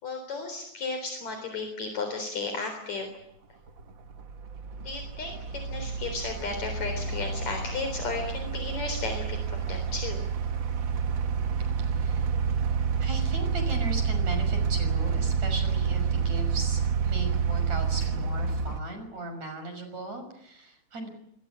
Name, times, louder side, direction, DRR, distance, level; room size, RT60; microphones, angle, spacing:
voice 1, 0.0-3.1 4.8-10.3, left 3 dB, 65° left, 5 dB, 5.2 m, -34 dB
sound 1, 3.0-3.1 3.7-18.8, right 6 dB, 45° right, 1.9 m, -29 dB
voice 2, 11.8-12.3 13.0-21.1, right 2 dB, 65° right, 8 dB, 7.2 m, -38 dB
26.5 x 21.0 x 8.4 m, 0.76 s
omnidirectional pair, 3.5 m